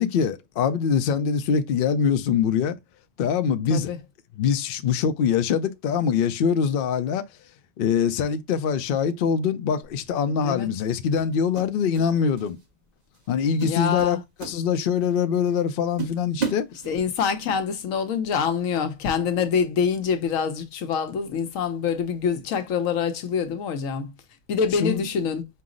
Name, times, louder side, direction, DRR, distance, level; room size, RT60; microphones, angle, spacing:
voice 1, 0.0-2.8 3.2-3.9 4.4-7.2 7.8-12.6 13.3-16.7 24.8-25.0, left 7 dB, 60° left, 0.6 m, -23 dB
sound 1, 9.8-10.1 11.2-12.1 12.4-12.7 13.1-13.3 13.6-15.1 15.5-15.6 16.0-17.3, right 6 dB, 35° right, 0.9 m, -33 dB
voice 2, 13.7-14.2 16.9-24.1 24.5-25.5, left 6 dB, 80° left, 1.1 m, -25 dB
5.5 x 2.0 x 3.7 m
omnidirectional pair, 1.4 m